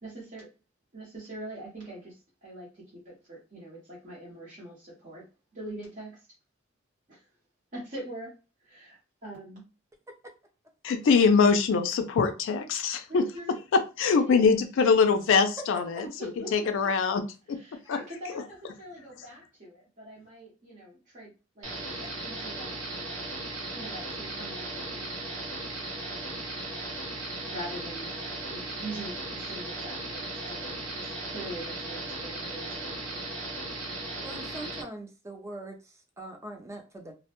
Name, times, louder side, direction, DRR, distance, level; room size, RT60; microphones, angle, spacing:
voice 1, 0.0-0.5 0.9-5.2 5.5-6.4 7.1-7.3 7.7-8.3 8.6-9.6 13.1-13.6 14.1-14.6 16.0-16.9 17.5-23.2 23.7-25.2 25.7-25.8 26.1-26.4 27.5-33.5, right 1 dB, 40° right, -6 dB, 0.8 m, -43 dB
voice 2, 10.8-13.2 13.7-17.2 17.5-17.6 17.9-18.0, left 5 dB, 65° left, 7 dB, 0.4 m, -23 dB
sound 1, 21.6-34.8, right 2 dB, 70° right, 0.7 m, -37 dB
voice 3, 34.2-37.1, right 1 dB, 15° right, 3 dB, 0.4 m, -42 dB
2.1 x 2.0 x 2.8 m, 0.32 s
head